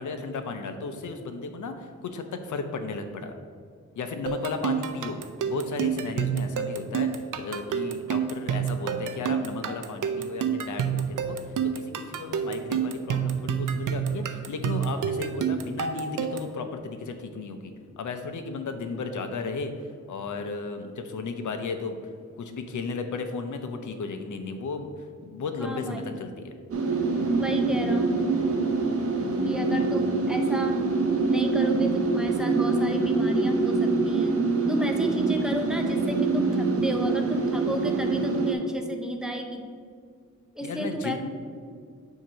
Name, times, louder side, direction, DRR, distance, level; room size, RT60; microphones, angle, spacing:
voice 1, 0.0-3.3 4.0-5.2 5.4-11.4 11.6-19.7 20.1-22.1 22.4-26.5 26.9-27.6 29.1-30.0 40.6-41.2, left 4 dB, 75° left, 7 dB, 0.7 m, -35 dB
sound 1, 4.3-16.6, right 7 dB, 90° right, 0.5 m, -29 dB
voice 2, 25.6-26.1 27.3-28.2 29.4-30.8 31.3-34.4 34.7-39.7 40.5-41.2, equal, ahead, 3 dB, 0.7 m, -32 dB
sound 2, 26.7-38.5, right 3 dB, 50° right, 0.8 m, -25 dB
7.6 x 2.9 x 5.6 m, 2.1 s
wide cardioid pair, 90°, 30 cm